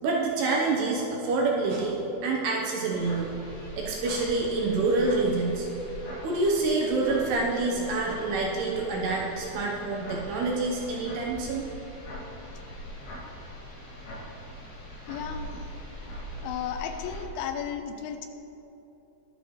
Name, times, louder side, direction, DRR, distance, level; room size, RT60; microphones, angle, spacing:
voice 1, 0.0-3.3 3.6-5.7 6.2-11.7, right 3 dB, 70° right, -2 dB, 2.7 m, -27 dB
sound 1, 2.9-17.2, equal, 65° left, 4.9 m, -42 dB
voice 2, 15.1-15.7 16.4-18.3, left 8 dB, 85° left, 7 dB, 3.1 m, -34 dB
22.0 x 7.8 x 3.3 m, 2.9 s
omnidirectional pair, 5.7 m